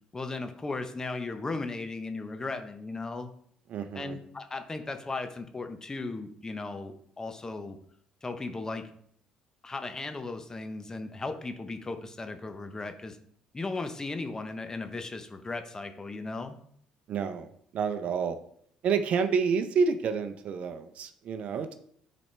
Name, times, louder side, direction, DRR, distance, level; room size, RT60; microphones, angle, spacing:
voice 1, 0.1-3.3 3.9-7.8 8.2-8.8 9.6-13.2 13.5-16.6, left 3 dB, 25° left, 8 dB, 0.9 m, -36 dB
voice 2, 3.7-4.2 17.1-18.4 18.8-21.7, right 6 dB, 60° right, 9 dB, 0.6 m, -29 dB
9.8 x 4.2 x 3.3 m, 0.64 s
supercardioid pair, 65°, 2 cm